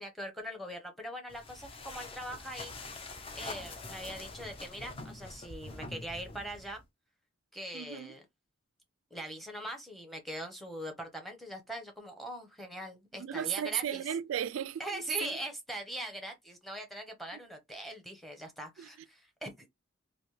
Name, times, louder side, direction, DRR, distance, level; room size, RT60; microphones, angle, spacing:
voice 1, 0.0-2.7 3.3-6.8 7.5-8.2 9.1-14.0 14.8-19.7, equal, ahead, 0.8 m, -42 dB
sound 1, 1.3-6.8, left 3 dB, 25° left, 0.5 m, -45 dB
voice 2, 7.7-8.1 13.1-15.3 17.3-17.4 18.8-18.9, right 10 dB, 75° right, 0.3 m, -35 dB
3.3 x 2.6 x 3.1 m
head